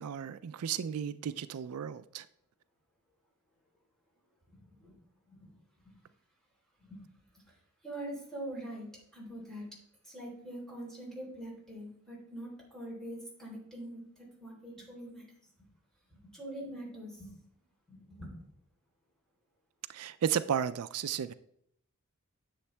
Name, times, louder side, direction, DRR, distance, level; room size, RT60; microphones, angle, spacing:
voice 1, 0.0-2.3 19.9-21.3, right 8 dB, 75° right, 0.4 m, -34 dB
voice 2, 4.5-4.9 5.3-5.5 6.8-7.0 7.3-7.4 7.8-8.9 9.1-9.6 10.0-15.2 16.1-17.3 17.9-18.3, right 1 dB, ahead, 3.6 m, -44 dB
9.9 x 7.2 x 3.3 m
head